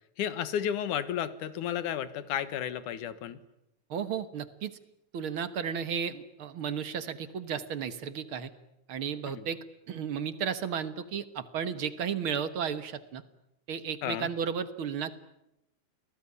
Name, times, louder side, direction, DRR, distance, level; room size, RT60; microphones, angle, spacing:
voice 1, 0.2-3.4 9.3-9.5 14.0-14.3, left 9 dB, 85° left, 14 dB, 2.9 m, -32 dB
voice 2, 3.9-4.8 5.1-8.5 8.9-9.6 9.9-13.2 13.7-15.1, right 7 dB, 50° right, 13 dB, 1.9 m, -33 dB
29.5 x 20.0 x 9.9 m, 0.84 s
omnidirectional pair, 3.5 m